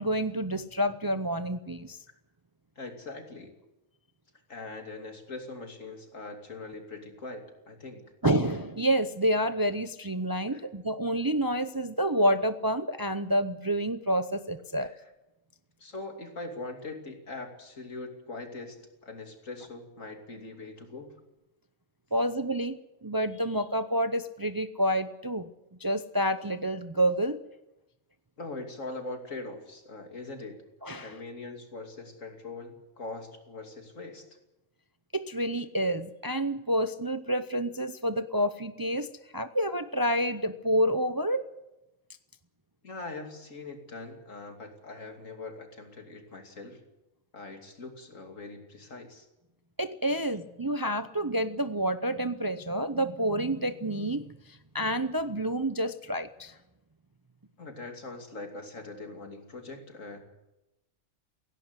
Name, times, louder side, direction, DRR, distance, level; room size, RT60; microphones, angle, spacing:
voice 1, 0.0-2.0 8.2-14.9 22.1-25.5 25.8-27.4 30.8-31.1 35.1-39.1 39.3-41.5 49.8-54.2 54.7-56.5, right 1 dB, 25° right, 10 dB, 0.6 m, -28 dB
voice 2, 2.8-3.5 4.5-8.0 10.5-10.7 14.8-15.0 15.8-21.1 28.4-30.6 31.0-34.2 42.8-46.8 47.3-49.3 57.6-60.2, left 2 dB, 75° left, 4 dB, 3.1 m, -42 dB
17.0 x 16.5 x 9.7 m, 0.95 s
omnidirectional pair, 1.3 m